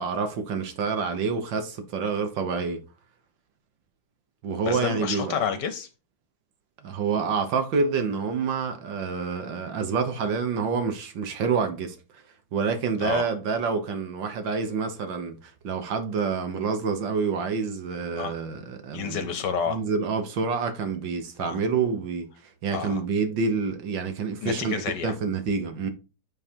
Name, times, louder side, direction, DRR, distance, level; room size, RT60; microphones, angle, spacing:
voice 1, 0.0-2.8 4.4-5.4 6.8-12.0 12.5-19.3 19.7-24.7 25.0-25.9, right 5 dB, 65° right, 1.7 m, -28 dB
voice 2, 4.6-5.9 13.0-13.2 18.2-18.3 18.9-19.8 21.4-21.6 22.7-23.0 24.4-25.1, left 7 dB, 65° left, 1.3 m, -29 dB
8.7 x 3.7 x 4.4 m
omnidirectional pair, 2.3 m